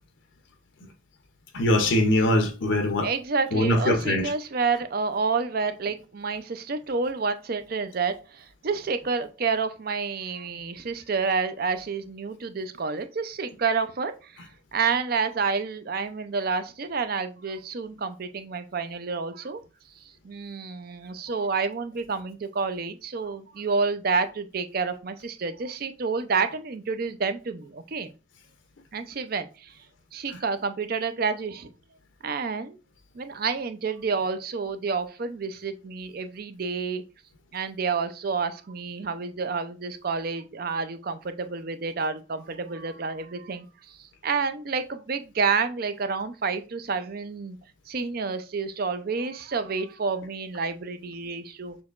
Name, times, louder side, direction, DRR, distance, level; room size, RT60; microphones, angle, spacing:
voice 1, 1.5-3.1 3.5-4.3 30.3-30.4, left 1 dB, 65° left, 0.7 m, -22 dB
voice 2, 3.0-14.3 14.7-19.6 20.2-28.1 28.9-29.7 30.1-31.7 32.2-32.8 33.1-37.0 37.5-43.7 44.0-47.6 47.9-51.8, right 4 dB, 50° right, 0.5 m, -29 dB
6.2 x 2.9 x 2.4 m
head